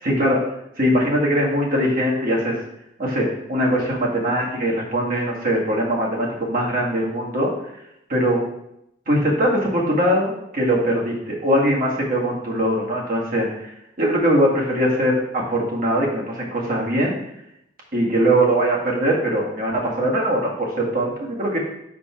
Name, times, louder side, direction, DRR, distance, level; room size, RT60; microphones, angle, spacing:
voice 1, 0.0-2.6 3.0-7.5 8.1-8.5 9.1-17.1 17.9-21.6, equal, 50° right, -3 dB, 1.8 m, -21 dB
5.4 x 4.5 x 5.9 m, 0.80 s
head